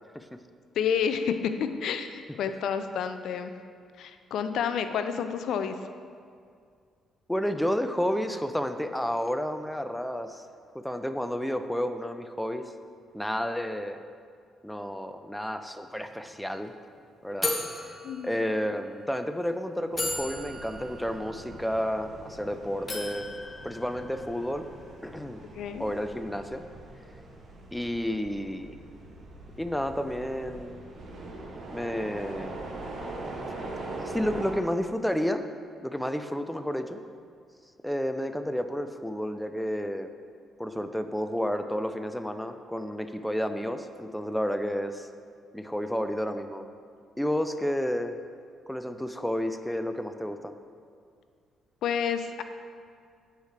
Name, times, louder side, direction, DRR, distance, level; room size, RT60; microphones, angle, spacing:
voice 1, 0.8-3.5 4.0-5.8 18.0-18.3 25.6-25.8 51.8-52.4, left 7 dB, 75° left, 9 dB, 0.3 m, -29 dB
voice 2, 7.3-10.4 10.8-12.6 13.1-14.0 14.6-16.7 17.2-17.5 17.8-17.9 18.2-23.3 23.6-24.7 25.0-25.4 25.8-26.6 27.7-28.8 29.6-30.8 31.7-32.6 34.0-35.4 35.8-37.0 37.8-40.1 40.6-45.1 45.5-46.7 47.2-48.2 48.7-50.5, equal, 5° left, 8 dB, 0.4 m, -31 dB
sound 1, 16.1-16.2 16.4-16.7 17.4-18.8 19.5-19.6 20.0-22.4 22.9-24.5, left 2 dB, 25° left, 0.8 m, -36 dB
sound 2, 19.9-34.5, right 2 dB, 55° right, 1.1 m, -42 dB
8.9 x 4.9 x 3.3 m, 2.2 s
cardioid pair, 90°, 0 cm